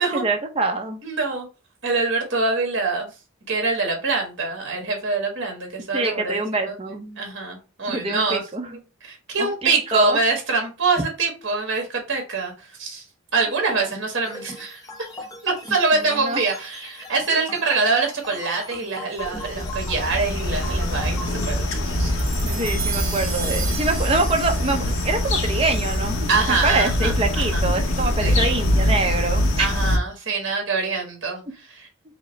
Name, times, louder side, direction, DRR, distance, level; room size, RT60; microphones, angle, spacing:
voice 1, 0.0-1.0 5.9-7.2 7.9-8.8 9.4-10.2 13.7-13.9 16.2-16.4 22.4-29.7, right 3 dB, 30° right, 0.7 m, -25 dB
voice 2, 1.0-1.5 1.8-3.1 3.5-13.0 13.3-14.8 15.4-22.1 26.3-27.6 28.2-28.4 29.6-31.9, right 3 dB, 60° right, 1.5 m, -25 dB
sound 1, 14.2-22.2, left 1 dB, 15° left, 0.7 m, -39 dB
sound 2, 19.2-30.0, left 1 dB, 80° left, 0.9 m, -23 dB
sound 3, 22.2-26.7, right 6 dB, 80° right, 1.3 m, -34 dB
4.9 x 2.1 x 4.4 m
head